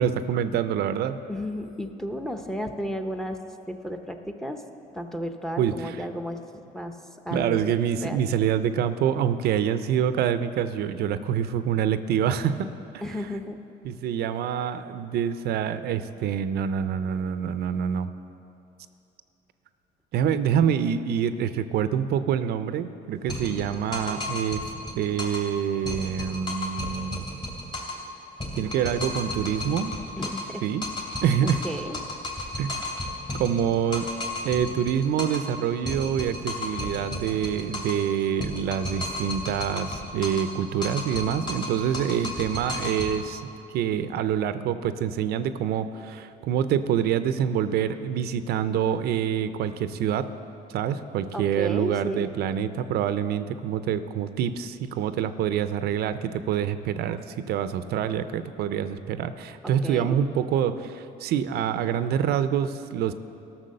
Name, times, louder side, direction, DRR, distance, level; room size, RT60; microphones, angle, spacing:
voice 1, 0.0-1.2 5.6-6.0 7.3-12.7 13.8-18.1 20.1-24.6 25.0-27.3 28.5-30.0 30.6-30.9 31.2-31.6 32.6-32.8 33.4-34.1 34.4-43.4 43.7-50.3 50.7-63.1, right 9 dB, 70° right, 12 dB, 0.5 m, -26 dB
voice 2, 1.3-3.4 3.7-4.6 4.9-7.0 7.2-7.7 8.0-8.2 13.0-13.6 30.2-30.6 31.4-32.0 51.3-52.3 59.8-60.2, equal, 5° left, 6 dB, 0.7 m, -33 dB
sound 1, 23.3-25.5 25.9-28.1 28.4-30.6 30.8-35.5 35.9-38.1 38.4-40.5 40.8-43.1, left 2 dB, 30° left, 2.3 m, -33 dB
14.0 x 6.0 x 6.5 m, 2.8 s
cardioid pair, 110°, 17 cm